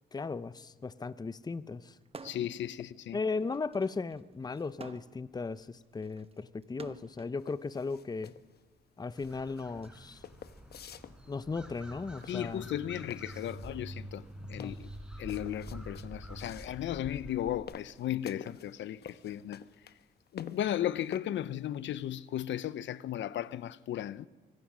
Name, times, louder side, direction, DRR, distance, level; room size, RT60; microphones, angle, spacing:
voice 1, 0.1-1.9 3.1-8.3 9.0-10.2 11.3-12.7 14.6-14.7, left 4 dB, 20° left, 0.7 m, -36 dB
sound 1, 2.1-2.6 3.0-7.4 8.2-9.9, right 4 dB, 30° right, 1.2 m, -50 dB
voice 2, 2.2-3.2 12.3-14.9 15.2-19.7 20.3-24.3, left 11 dB, 70° left, 0.7 m, -35 dB
sound 2, 7.4-21.2, left 8 dB, 55° left, 1.1 m, -51 dB
sound 3, 9.2-17.6, equal, 5° right, 5.4 m, -47 dB
24.5 x 23.5 x 6.2 m
cardioid pair, 90°, 20 cm